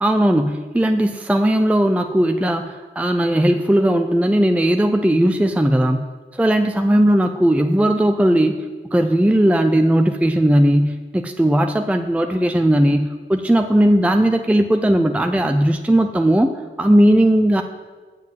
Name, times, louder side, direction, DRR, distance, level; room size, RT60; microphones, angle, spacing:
voice 1, 0.0-6.1 6.3-8.6 8.9-17.6, right 1 dB, 5° right, 6 dB, 0.5 m, -17 dB
7.6 x 7.4 x 7.5 m, 1.4 s
wide cardioid pair, 65°, 20 cm